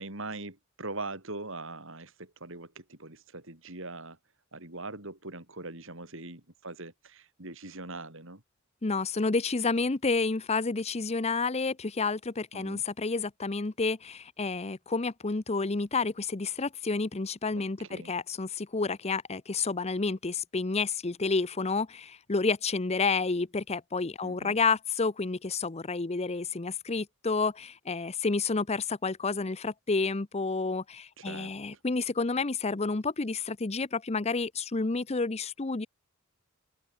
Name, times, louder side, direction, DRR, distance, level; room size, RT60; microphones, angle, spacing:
voice 1, 0.0-4.2 4.5-8.4 12.5-12.8 17.5-17.6 17.9-18.1 24.2-24.6 31.2-31.5, right 2 dB, 60° right, 5.4 m, -41 dB
voice 2, 8.8-35.9, left 4 dB, 30° left, 0.7 m, -30 dB
head